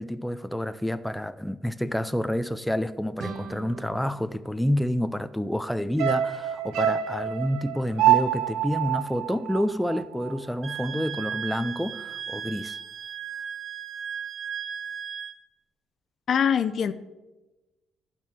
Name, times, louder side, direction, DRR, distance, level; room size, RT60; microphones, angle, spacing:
voice 1, 0.0-12.8, equal, 5° left, 0.4 m, -28 dB
sound 1, 3.2-5.9, right 4 dB, 70° right, 1.2 m, -42 dB
sound 2, 6.0-10.4 10.7-10.8, right 12 dB, 90° right, 0.7 m, -26 dB
Wind instrument woodwind instrument, 10.6-15.4, right 8 dB, 50° right, 0.8 m, -36 dB
voice 2, 16.3-16.9, left 7 dB, 60° left, 0.6 m, -23 dB
12.0 x 4.5 x 7.7 m
cardioid pair, 90°, 0 cm